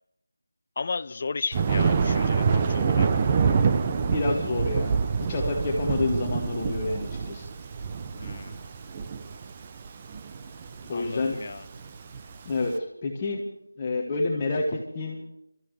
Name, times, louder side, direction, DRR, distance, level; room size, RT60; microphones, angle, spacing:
voice 1, 0.8-3.1 8.2-8.7 10.9-11.6, left 4 dB, 30° left, 16 dB, 0.4 m, -34 dB
Thunder, 1.5-12.6, right 5 dB, 20° right, 0.6 m, -26 dB
voice 2, 4.0-7.5 10.9-11.4 12.1-12.2 12.4-13.4 13.8-15.2, left 2 dB, 15° left, -1 dB, 1.2 m, -29 dB
25.0 x 13.5 x 3.2 m, 0.86 s
figure-of-eight pair, 175°, 0 cm